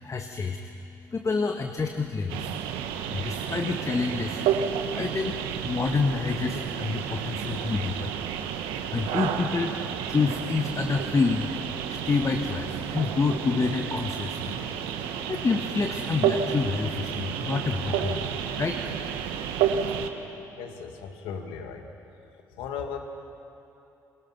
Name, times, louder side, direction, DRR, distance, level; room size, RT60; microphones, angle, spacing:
voice 1, 0.0-2.6 3.0-8.2 8.6-11.5 11.9-14.5 15.0-18.3 18.6-18.8, left 4 dB, 35° left, 5 dB, 1.6 m, -28 dB
sound 1, 2.3-20.1, right 8 dB, 80° right, 1.4 m, -31 dB
voice 2, 20.6-21.9 22.2-23.0, left 6 dB, 75° left, 4 dB, 2.2 m, -37 dB
29.5 x 21.5 x 6.0 m, 2.9 s
hypercardioid pair, 55°, 9 cm